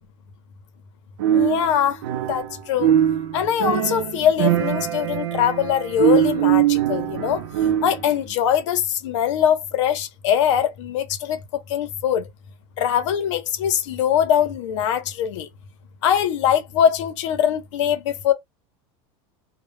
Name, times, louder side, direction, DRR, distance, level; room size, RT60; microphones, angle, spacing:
sound 1, 1.2-2.5 2.8-8.1, right 10 dB, 75° right, 0.6 m, -22 dB
voice 1, 1.3-2.0 2.3-2.9 3.3-7.4 7.8-12.2 12.8-15.5 16.0-18.3, left 9 dB, 80° left, 0.7 m, -22 dB
2.2 x 2.1 x 3.2 m
supercardioid pair, 180°, 15 cm